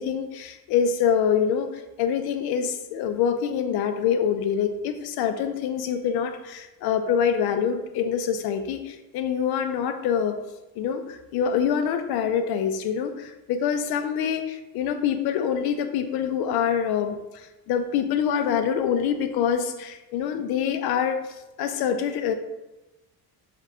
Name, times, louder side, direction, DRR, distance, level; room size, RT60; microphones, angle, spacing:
voice 1, 0.0-10.4 10.8-21.2 21.6-22.3, left 8 dB, 75° left, 8 dB, 0.5 m, -25 dB
3.6 x 2.5 x 4.1 m, 1.0 s
cardioid pair, 140°, 37 cm